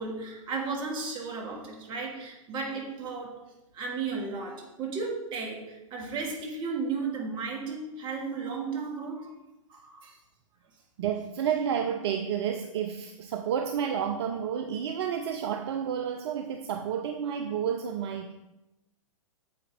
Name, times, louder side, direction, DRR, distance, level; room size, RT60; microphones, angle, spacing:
voice 1, 0.0-3.4 3.7-9.4 9.7-10.2, right 4 dB, 30° right, 0 dB, 2.4 m, -34 dB
voice 2, 11.0-18.3, right 8 dB, 55° right, 7 dB, 0.7 m, -30 dB
8.6 x 7.9 x 3.7 m, 0.97 s
figure-of-eight pair, 110°, 17 cm